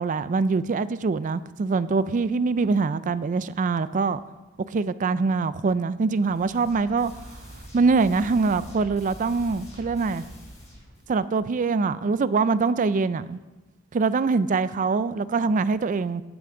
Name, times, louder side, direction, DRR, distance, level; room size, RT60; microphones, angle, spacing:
voice 1, 0.0-4.2 4.7-7.3 7.7-10.3 11.1-13.4 13.9-16.2, right 4 dB, 35° right, 0.3 m, -24 dB
sound 1, 6.3-11.1, equal, 30° left, 3.5 m, -44 dB
13.5 x 9.3 x 3.8 m
head